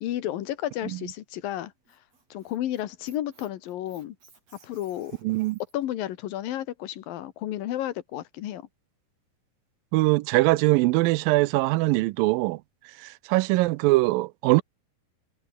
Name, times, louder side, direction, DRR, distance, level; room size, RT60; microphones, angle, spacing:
voice 1, 0.0-1.7 2.3-4.2 4.6-5.2 5.7-8.7, left 13 dB, 80° left, 3.1 m, -32 dB
Squeak, 1.6-5.9, right 4 dB, 45° right, 6.9 m, -58 dB
voice 2, 5.2-5.6 9.9-12.6 13.0-14.6, right 20 dB, 90° right, 2.3 m, -22 dB
omnidirectional pair, 4.0 m